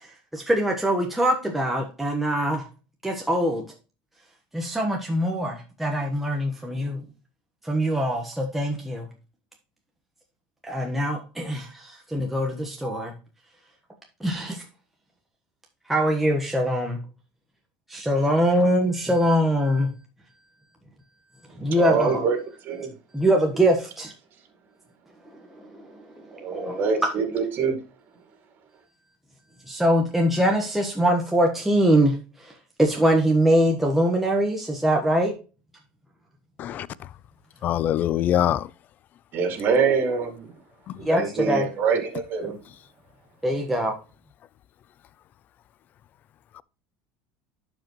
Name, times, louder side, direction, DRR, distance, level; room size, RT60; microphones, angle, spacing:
voice 1, 0.3-2.6 3.0-3.7 4.5-7.0 7.6-9.1 10.6-13.1 14.2-14.6 15.9-17.0 17.9-19.9 21.6-22.2 23.1-24.1 26.5-26.8 29.7-32.1 32.4-32.5 32.8-35.3 41.0-41.7 43.4-43.9, equal, 5° right, 1.3 m, -23 dB
voice 2, 21.7-22.4 22.6-22.9 26.3-27.8 39.3-40.5 41.0-42.6, right 5 dB, 45° right, 2.4 m, -25 dB
voice 3, 37.6-38.7 40.9-41.0 46.6-46.7, left 11 dB, 40° left, 0.4 m, -23 dB
11.5 x 5.0 x 3.0 m
supercardioid pair, 125°, 5 cm